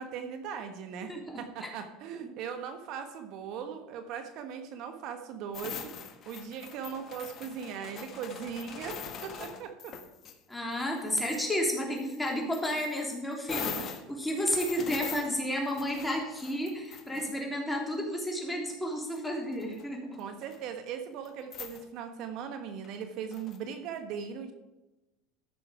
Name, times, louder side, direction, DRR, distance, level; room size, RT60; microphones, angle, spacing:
voice 1, 0.0-9.9 11.0-11.1 20.2-24.5, right 7 dB, 60° right, 7 dB, 1.2 m, -39 dB
voice 2, 1.1-1.7 2.1-2.2 10.5-20.2, equal, 5° left, 0 dB, 3.2 m, -32 dB
sound 1, 5.5-10.4 10.7-11.5 12.0-17.7 18.7-18.8 19.2-19.8 20.1-20.7 21.3-21.4 21.5-21.8 22.8-23.6, left 7 dB, 40° left, 1.5 m, -42 dB
14.0 x 6.3 x 4.8 m, 1.0 s
supercardioid pair, 105°, 0 cm